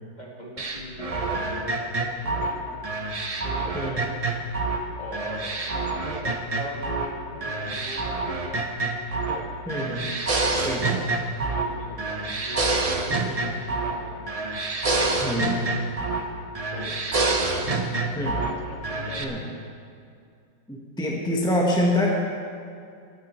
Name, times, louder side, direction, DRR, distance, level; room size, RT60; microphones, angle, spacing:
voice 1, 0.2-2.8 3.4-3.8 4.1-4.4 5.0-8.9 9.1-9.5 10.6-11.0 11.4-14.3 14.8-15.9 16.7-17.0 17.4-19.5, equal, 20° left, -2 dB, 1.9 m, -40 dB
sound 1, 0.6-4.8 5.1-7.1 7.4-9.4 9.7-11.7 12.0-14.0 14.3-16.3 16.5-18.5 18.8-19.2, right 3 dB, 65° right, 0.3 m, -27 dB
voice 2, 9.7-10.1 10.5-11.0 15.2-15.6 18.2-18.4 19.2-19.4 20.7-22.2, equal, 5° left, -2 dB, 1.0 m, -25 dB
20.5 x 9.4 x 4.5 m, 2.4 s
omnidirectional pair, 2.2 m